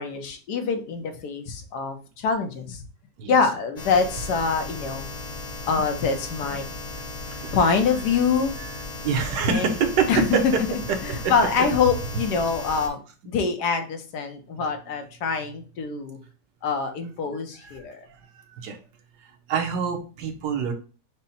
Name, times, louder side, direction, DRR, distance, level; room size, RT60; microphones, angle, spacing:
voice 1, 0.0-2.8 3.3-5.1 5.7-6.6 7.5-8.6 9.5-9.7 10.1-16.2 16.6-18.1, left 5 dB, 80° left, 6 dB, 1.3 m, -25 dB
sound 1, 3.8-12.9, left 2 dB, 55° left, 1.2 m, -36 dB
voice 2, 7.2-7.6 8.6-8.7 9.0-10.4 11.1-11.2 17.6-17.8 18.5-18.8 19.5-20.7, right 6 dB, 90° right, 4 dB, 1.4 m, -25 dB
5.3 x 2.1 x 4.1 m, 0.36 s
omnidirectional pair, 1.7 m